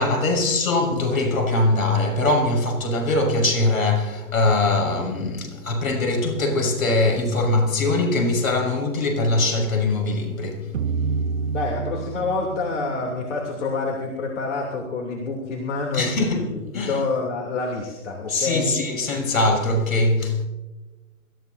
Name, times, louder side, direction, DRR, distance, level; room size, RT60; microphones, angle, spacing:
voice 1, 0.0-10.6 11.1-11.4 15.9-16.4 16.7-17.0 18.3-20.5, left 2 dB, 70° left, 6.1 m, -22 dB
sound 1, 10.7-13.9, right 5 dB, 60° right, 0.8 m, -29 dB
voice 2, 11.5-18.8, left 3 dB, 55° left, 3.0 m, -27 dB
27.5 x 14.0 x 2.7 m
hypercardioid pair, 155°, 44 cm